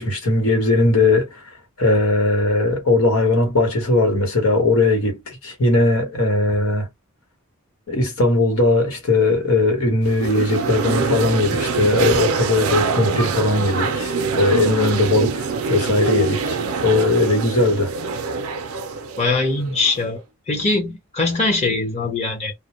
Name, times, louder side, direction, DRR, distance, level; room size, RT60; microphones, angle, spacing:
voice 1, 0.0-1.4 1.8-6.9 7.9-17.9, left 2 dB, 80° left, 1.1 m, -19 dB
sound 1, 10.0-20.1, right 4 dB, 85° right, 0.5 m, -24 dB
voice 2, 19.2-20.2 20.5-22.5, left 3 dB, 30° left, 0.9 m, -21 dB
2.2 x 2.1 x 2.9 m
head